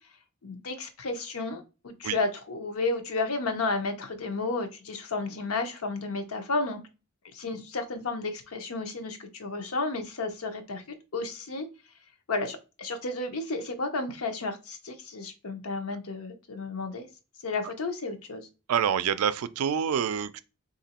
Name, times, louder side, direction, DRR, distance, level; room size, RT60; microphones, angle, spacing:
voice 1, 0.4-6.8 7.3-10.8 11.1-11.7 12.3-17.1 17.4-18.5, left 3 dB, 85° left, 0.7 m, -32 dB
voice 2, 18.7-20.4, right 8 dB, 85° right, 0.4 m, -27 dB
2.9 x 2.5 x 4.2 m
head